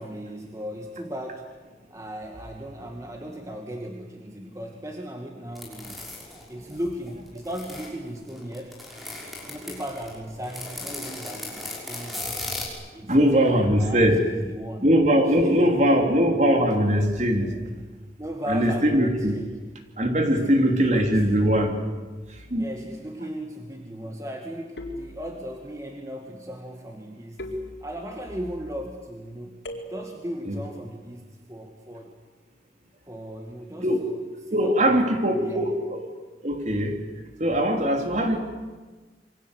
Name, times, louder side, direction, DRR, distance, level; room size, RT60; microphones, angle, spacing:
voice 1, 0.0-1.5 1.9-6.1 6.5-8.8 9.5-12.5 12.9-14.9 15.3-15.9 18.2-19.6 20.3-20.5 20.9-21.2 22.5-27.4 27.8-29.6 29.9-32.1 33.1-35.7, equal, 20° right, 2 dB, 2.2 m, -37 dB
sound 1, 5.5-7.9 8.3-12.7, left 2 dB, ahead, 5.8 m, -36 dB
voice 2, 13.1-14.2 14.8-17.6 18.5-19.3 20.0-21.8 22.3-22.7 30.4-30.6 33.8-34.0 34.5-36.0 36.4-37.0 37.4-38.4, equal, 40° right, 4 dB, 3.4 m, -21 dB
sound 2, 22.4-22.9 24.8-25.7 27.4-28.3 29.6-30.4, equal, 80° left, 4.3 m, -39 dB
27.5 x 23.5 x 8.3 m, 1.3 s
head